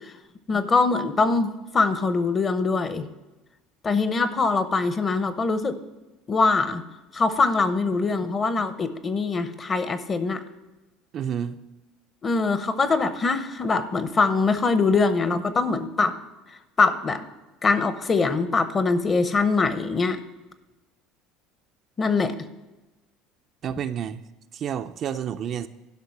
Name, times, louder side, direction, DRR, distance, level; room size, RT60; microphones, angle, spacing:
voice 1, 0.5-3.1 3.8-5.8 6.3-6.8 7.1-10.4 12.2-16.2 16.8-17.2 17.6-20.2 22.0-22.3, left 4 dB, 20° left, 11 dB, 0.7 m, -23 dB
voice 2, 11.1-11.6 23.6-24.2 24.5-25.7, right 8 dB, 35° right, 8 dB, 0.4 m, -29 dB
12.0 x 5.9 x 5.8 m, 1.1 s
cardioid pair, 160°, 0 cm